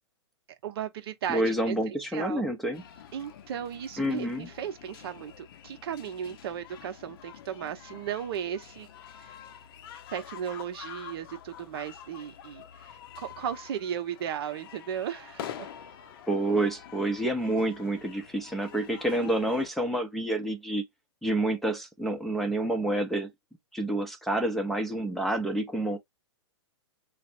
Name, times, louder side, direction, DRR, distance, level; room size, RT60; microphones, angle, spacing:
voice 1, 0.6-2.5 3.1-8.9 9.2-9.3 9.9-15.7 19.2-19.3, right 9 dB, 55° right, 0.7 m, -36 dB
voice 2, 1.3-2.8 4.0-4.5 16.3-20.8 21.2-23.3 23.7-26.0, right 1 dB, ahead, 0.5 m, -28 dB
sound 1, 2.7-19.7, left 9 dB, 55° left, 0.6 m, -47 dB
3.3 x 2.0 x 4.2 m
hypercardioid pair, 115°, 15 cm